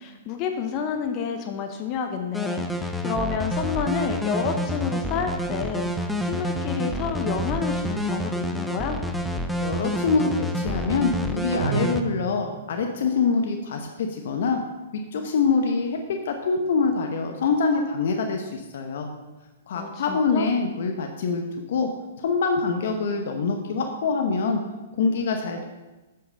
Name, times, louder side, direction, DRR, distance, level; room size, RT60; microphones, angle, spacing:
voice 1, 0.0-9.0 19.7-20.5, left 6 dB, 35° left, 5 dB, 0.9 m, -29 dB
sound 1, 2.3-12.0, equal, ahead, 0.7 m, -28 dB
voice 2, 9.6-14.6 14.9-19.1 19.7-21.4 21.7-21.9 22.2-24.6 25.0-25.7, left 4 dB, 65° left, 4 dB, 0.9 m, -25 dB
sound 2, 11.5-13.0, right 6 dB, 85° right, 0.7 m, -30 dB
8.4 x 5.8 x 5.5 m, 1.1 s
hypercardioid pair, 125°, 0 cm